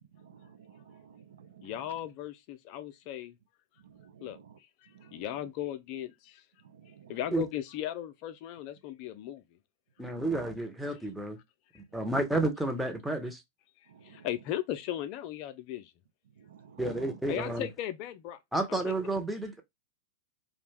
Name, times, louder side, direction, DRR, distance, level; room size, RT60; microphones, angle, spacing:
voice 1, 0.1-2.0 3.8-4.6 4.9-5.2 6.6-7.2 10.0-10.4 11.9-12.1 13.9-14.3 16.4-17.2, right 8 dB, 65° right, 0.4 m, -54 dB
voice 2, 1.6-3.3 4.2-4.4 5.0-6.4 7.1-9.4 14.0-15.9 17.3-18.4 18.7-18.9, left 12 dB, 45° left, 0.3 m, -37 dB
voice 3, 10.0-11.4 11.9-13.4 16.8-17.7 18.5-19.6, right 2 dB, 5° right, 0.6 m, -31 dB
2.4 x 2.1 x 3.2 m
figure-of-eight pair, 95°, 0 cm